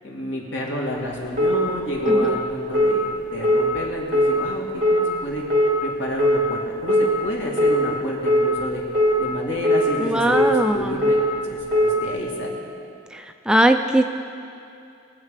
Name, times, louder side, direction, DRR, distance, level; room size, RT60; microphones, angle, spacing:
voice 1, 0.0-5.4 5.8-8.8 9.2-12.6, left 1 dB, 80° left, -3 dB, 2.5 m, -30 dB
sound 1, 1.4-1.6 2.1-2.3 2.7-3.0 3.4-3.6 4.1-4.3 4.8-5.0 5.5-5.7 6.2-6.4 6.9-7.1 7.6-7.8 8.3-8.5 8.9-9.2 9.6-9.9 10.3-10.5 11.0-11.2 11.7-11.9, left 1 dB, 45° right, 2.0 m, -18 dB
voice 2, 2.1-2.4 10.0-11.1 13.1-14.0, right 1 dB, 5° right, 6 dB, 0.4 m, -20 dB
21.5 x 7.4 x 5.1 m, 2.6 s
head